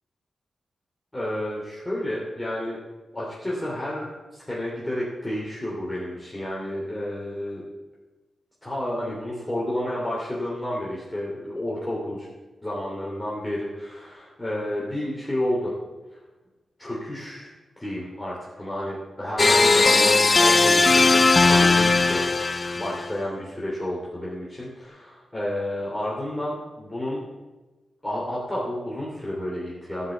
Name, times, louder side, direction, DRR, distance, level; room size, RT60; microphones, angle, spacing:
voice 1, 1.1-2.8 3.1-7.6 8.6-12.3 12.6-15.7 16.1-16.2 16.8-17.5 17.8-27.3 28.0-30.1, left 1 dB, 15° left, -6 dB, 2.9 m, -31 dB
sound 1, 19.4-23.1, left 3 dB, 35° left, 0.5 m, -18 dB
11.5 x 5.6 x 7.8 m, 1.2 s
cardioid pair, 70°, 0 cm